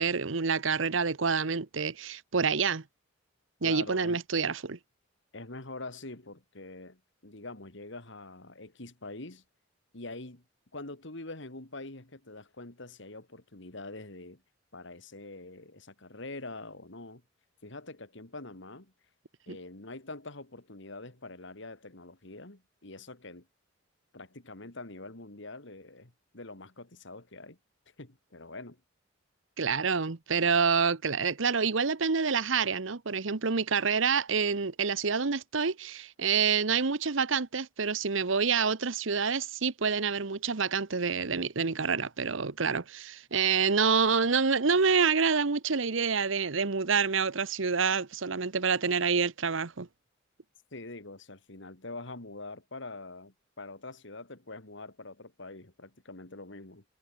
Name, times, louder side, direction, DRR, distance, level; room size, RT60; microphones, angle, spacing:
voice 1, 0.0-2.8 3.6-4.8 19.5-19.6 29.6-49.9, right 5 dB, 70° right, 1.0 m, -27 dB
voice 2, 3.6-4.2 5.3-9.4 9.9-10.4 10.7-14.4 14.7-17.2 17.6-18.9 19.5-23.5 24.1-27.6 28.0-28.8 50.7-56.8, left 2 dB, 60° left, 2.6 m, -44 dB
head